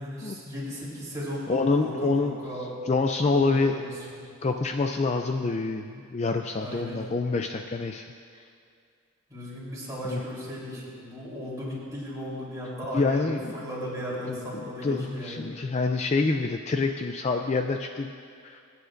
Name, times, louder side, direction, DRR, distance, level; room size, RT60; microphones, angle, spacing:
voice 1, 0.0-2.7 3.3-4.3 6.6-7.0 9.3-13.2 13.5-15.5, equal, 15° right, -7 dB, 3.4 m, -36 dB
voice 2, 1.5-2.4 2.9-3.8 4.4-8.1 10.0-10.2 12.9-13.6 14.3-18.1 18.4-18.6, left 3 dB, 30° left, 5 dB, 0.3 m, -26 dB
23.0 x 9.4 x 2.5 m, 2.2 s
head